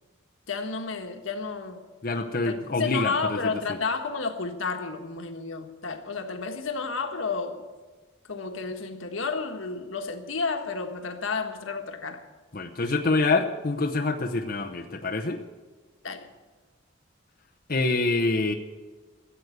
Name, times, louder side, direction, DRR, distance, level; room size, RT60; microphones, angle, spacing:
voice 1, 0.5-1.9 2.4-7.6 8.2-12.2 16.0-16.3, left 4 dB, 85° left, 5 dB, 1.5 m, -31 dB
voice 2, 2.0-3.8 12.5-15.4 17.7-18.5, left 3 dB, 45° left, 3 dB, 0.8 m, -26 dB
15.5 x 8.1 x 9.3 m, 1.4 s
head